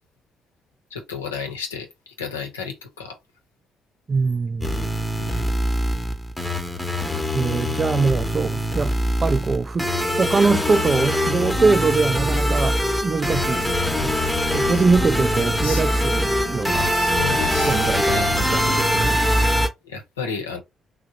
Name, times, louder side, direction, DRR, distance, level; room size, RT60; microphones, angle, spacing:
voice 1, 0.9-3.2 5.1-5.5 15.6-15.8 16.9-18.4 19.8-20.6, left 5 dB, 85° left, 0.6 m, -32 dB
voice 2, 4.1-4.9 7.3-13.7 14.0-14.2 14.5-16.9 17.6-19.2, right 4 dB, 35° right, 0.4 m, -23 dB
sound 1, 4.6-19.7, equal, 5° left, 0.8 m, -23 dB
2.8 x 2.0 x 3.8 m
figure-of-eight pair, 40°, 0 cm